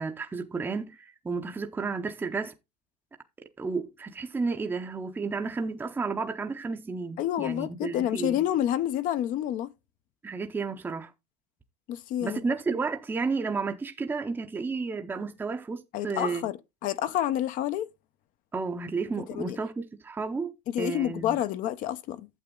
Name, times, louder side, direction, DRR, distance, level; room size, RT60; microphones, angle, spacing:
voice 1, 0.0-2.5 3.6-8.4 10.2-11.1 12.2-16.4 18.5-21.4, right 4 dB, 10° right, 0.7 m, -32 dB
voice 2, 7.2-9.7 11.9-12.4 15.9-16.6 16.8-17.9 19.4-19.6 20.7-22.3, left 11 dB, 40° left, 0.7 m, -28 dB
8.9 x 7.5 x 3.7 m
supercardioid pair, 145°, 21 cm